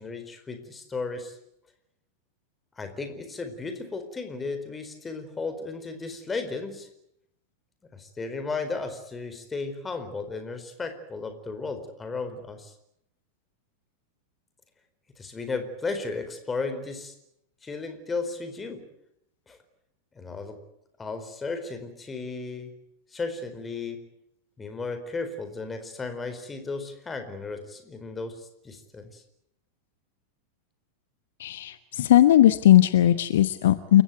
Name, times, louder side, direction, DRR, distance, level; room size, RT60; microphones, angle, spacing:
voice 1, 0.0-1.4 2.8-6.9 7.9-12.7 15.2-17.1 17.6-18.9 19.5-19.6 20.1-20.6 21.0-22.7 23.1-24.1 24.6-29.2, left 4 dB, 15° left, 8 dB, 4.5 m, -34 dB
voice 2, 31.4-34.0, left 12 dB, 60° left, 13 dB, 1.0 m, -18 dB
29.0 x 16.0 x 9.3 m, 0.77 s
figure-of-eight pair, 90°, 0 cm